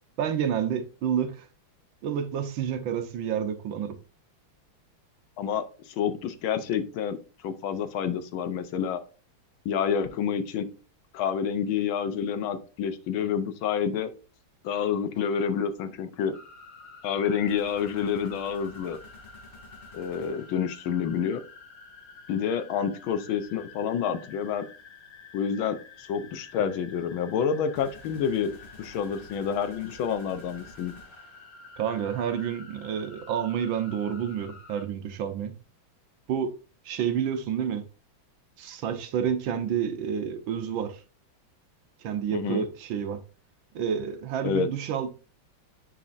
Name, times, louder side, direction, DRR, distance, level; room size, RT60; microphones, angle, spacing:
voice 1, 0.2-1.5 2.0-3.9 31.8-35.6 36.3-36.5 36.8-37.8 38.6-41.0 42.0-43.2 43.7-45.1, right 8 dB, 75° right, 1.6 m, -29 dB
voice 2, 5.4-7.2 7.4-9.0 9.6-10.7 11.1-14.1 14.6-16.4 17.0-19.0 19.9-21.4 22.3-24.6 25.3-30.9 42.3-42.7 44.4-44.7, left 7 dB, 75° left, 1.6 m, -28 dB
sound 1, 16.3-34.8, left 5 dB, 50° left, 1.0 m, -49 dB
sound 2, 17.5-20.8 27.7-31.8, left 2 dB, 25° left, 2.6 m, -51 dB
10.0 x 4.3 x 2.5 m
omnidirectional pair, 2.3 m